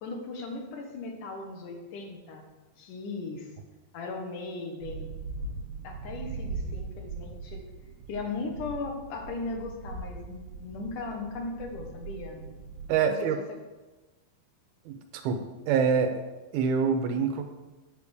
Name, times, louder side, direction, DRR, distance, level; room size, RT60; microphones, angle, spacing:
voice 1, 0.0-2.5 2.8-3.5 3.9-5.1 5.8-7.6 8.1-12.4 13.2-13.3, left 3 dB, 65° left, 3 dB, 2.5 m, -37 dB
sound 1, 4.8-12.9, right 3 dB, 35° right, 3.7 m, -40 dB
voice 2, 12.9-13.4 14.9-16.2 16.5-17.4, right 6 dB, 80° right, 6 dB, 2.6 m, -26 dB
9.6 x 6.8 x 4.9 m, 1.2 s
omnidirectional pair, 4.5 m